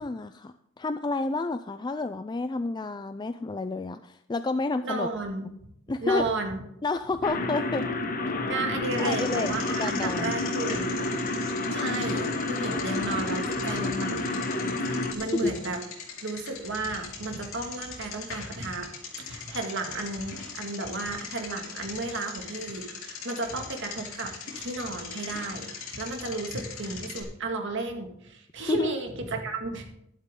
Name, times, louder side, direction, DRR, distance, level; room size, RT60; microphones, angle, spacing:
voice 1, 0.0-5.1 5.9-6.3 6.8-7.8 9.0-9.5 9.8-10.4 15.3-15.5 28.7-29.0, left 3 dB, 20° left, 10 dB, 0.3 m, -30 dB
voice 2, 4.8-5.5 6.0-6.6 8.5-11.3 11.7-15.8 16.2-18.9 19.2-29.9, right 2 dB, 55° right, 4 dB, 2.0 m, -33 dB
sound 1, 7.2-15.1, left 2 dB, 40° left, 1.3 m, -29 dB
Bicycle, 8.8-27.2, left 5 dB, 70° left, 3.7 m, -41 dB
12.0 x 11.5 x 3.7 m, 0.76 s
head